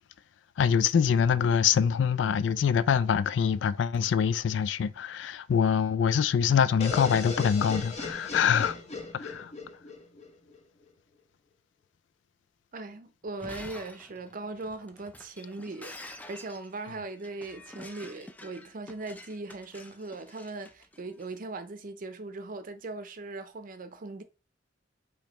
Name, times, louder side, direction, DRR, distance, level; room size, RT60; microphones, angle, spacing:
voice 1, 0.6-8.8 9.1-9.5, left 7 dB, 70° left, 0.3 m, -24 dB
sound 1, 6.8-10.6, left 3 dB, 35° left, 1.0 m, -37 dB
voice 2, 12.7-24.2, right 3 dB, 50° right, 0.6 m, -39 dB
Shatter, 13.3-21.3, left 2 dB, 10° left, 0.4 m, -48 dB
5.0 x 3.2 x 2.9 m
head